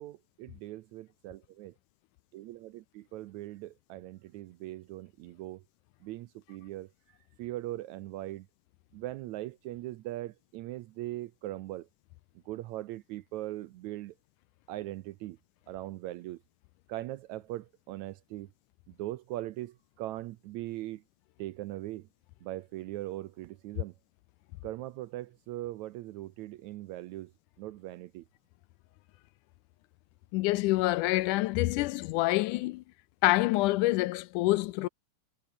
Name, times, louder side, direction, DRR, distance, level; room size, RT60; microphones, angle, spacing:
voice 1, 0.0-1.7 2.3-5.6 6.0-6.9 7.4-8.5 8.9-11.9 12.5-14.1 14.7-15.4 15.7-16.4 16.9-18.5 18.9-21.0 21.4-22.1 22.4-23.9 24.6-27.3 27.6-28.3, right 15 dB, 75° right, 1.8 m, -40 dB
voice 2, 30.3-32.8 33.2-34.9, left 19 dB, 80° left, 2.0 m, -26 dB
omnidirectional pair, 3.8 m